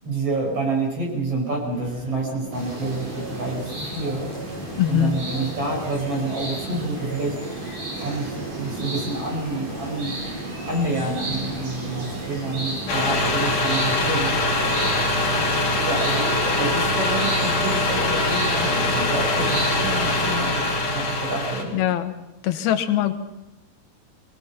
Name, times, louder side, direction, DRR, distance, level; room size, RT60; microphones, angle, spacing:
voice 1, 0.0-4.3 4.8-7.4 7.9-10.2 10.7-14.4 15.9-21.7, right 2 dB, 40° right, -1 dB, 6.2 m, -28 dB
sound 1, 1.7-13.2, left 1 dB, 80° right, 7.9 m, -40 dB
sound 2, 2.5-20.3, right 2 dB, 60° right, 5.9 m, -33 dB
voice 2, 4.8-5.1 21.7-22.1 22.4-23.1, left 11 dB, 85° left, 8 dB, 3.1 m, -22 dB
sound 3, 12.9-21.6, left 2 dB, 55° left, 4.6 m, -23 dB
24.5 x 18.5 x 5.9 m, 0.97 s
omnidirectional pair, 4.2 m